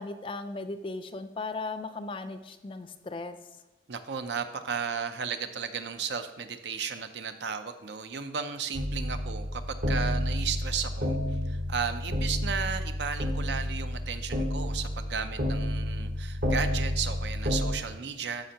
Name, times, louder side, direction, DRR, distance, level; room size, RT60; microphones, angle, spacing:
voice 1, 0.0-3.4, left 3 dB, 30° left, 10 dB, 0.4 m, -37 dB
voice 2, 3.9-18.5, right 6 dB, 80° right, 9 dB, 0.6 m, -34 dB
sound 1, 8.7-17.7, left 1 dB, 60° right, 1.1 m, -30 dB
13.0 x 5.1 x 2.9 m, 1.1 s
head